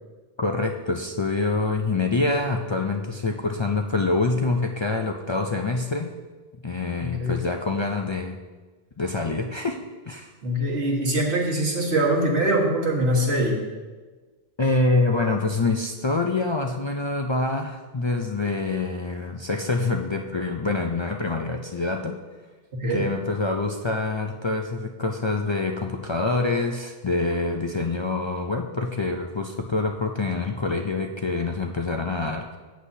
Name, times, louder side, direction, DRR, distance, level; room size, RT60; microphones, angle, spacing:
voice 1, 0.4-6.1 6.6-8.4 9.0-9.8 10.1-10.3 14.6-22.2 22.9-32.5, left 3 dB, 40° left, 2 dB, 0.4 m, -26 dB
voice 2, 7.0-7.4 10.4-13.6 22.8-23.1, right 1 dB, 85° right, -2 dB, 1.9 m, -23 dB
13.5 x 8.2 x 2.7 m, 1.3 s
omnidirectional pair, 1.1 m